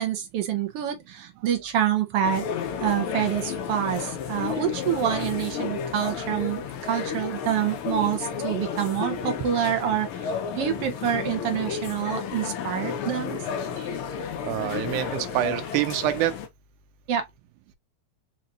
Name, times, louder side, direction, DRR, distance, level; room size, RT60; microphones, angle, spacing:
voice 1, 0.0-2.5 2.8-13.4 17.1-17.3, right 10 dB, 70° right, 1.5 m, -27 dB
sound 1, 2.2-16.5, left 7 dB, 80° left, 1.2 m, -32 dB
voice 2, 14.4-16.3, right 13 dB, 90° right, 2.2 m, -26 dB
5.2 x 2.8 x 2.5 m
omnidirectional pair, 3.4 m